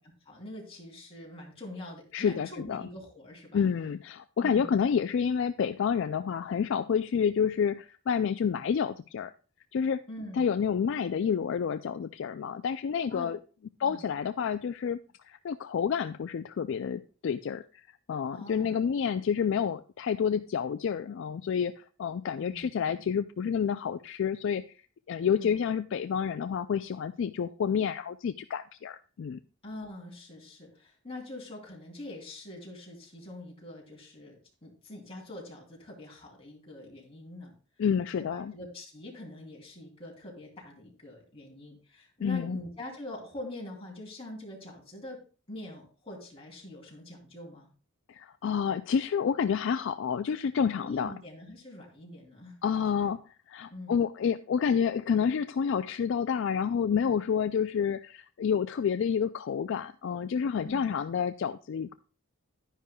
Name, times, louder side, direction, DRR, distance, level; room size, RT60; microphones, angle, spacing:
voice 1, 0.3-3.7 4.4-4.7 10.1-10.5 13.1-13.3 13.8-14.1 18.3-18.8 22.3-23.1 25.3-25.5 29.6-37.5 38.2-45.2 45.5-47.7 50.8-52.6 53.7-54.0 60.6-60.9, left 1 dB, 30° left, -2 dB, 3.0 m, -44 dB
voice 2, 2.1-2.8 3.5-9.3 9.7-10.0 10.4-13.4 13.8-15.0 15.3-17.8 18.1-24.6 25.1-29.4 37.8-38.5 42.2-42.6 48.1-51.1 52.6-61.9, left 7 dB, 60° left, 11 dB, 0.3 m, -29 dB
11.0 x 10.0 x 2.3 m, 0.38 s
head